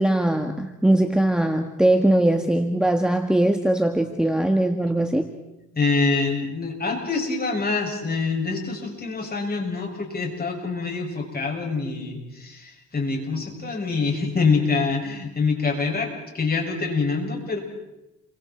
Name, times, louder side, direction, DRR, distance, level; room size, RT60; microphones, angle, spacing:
voice 1, 0.0-5.3, right 1 dB, ahead, 5 dB, 1.7 m, -21 dB
voice 2, 5.7-17.6, left 4 dB, 30° left, 1 dB, 7.1 m, -25 dB
30.0 x 25.0 x 4.5 m, 0.93 s
cardioid pair, 90°, 30 cm